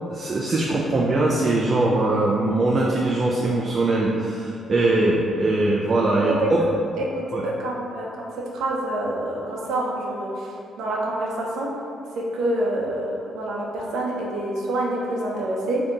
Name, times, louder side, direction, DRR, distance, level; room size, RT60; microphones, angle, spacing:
voice 1, 0.1-6.6 7.3-7.5, right 2 dB, 40° right, -3 dB, 0.4 m, -21 dB
voice 2, 7.0-8.1 8.5-11.7 12.2-15.8, right 1 dB, 80° right, -3 dB, 0.6 m, -27 dB
3.4 x 2.7 x 3.8 m, 2.6 s
cardioid pair, 90°, 0 cm